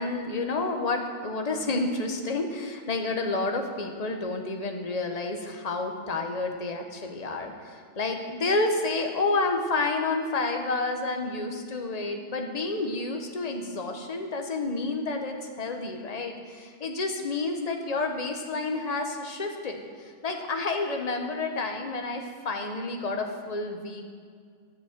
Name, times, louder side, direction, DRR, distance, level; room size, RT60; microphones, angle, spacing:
voice 1, 0.0-24.1, left 3 dB, 35° left, 4 dB, 1.1 m, -30 dB
12.0 x 7.2 x 7.4 m, 2.1 s
omnidirectional pair, 1.2 m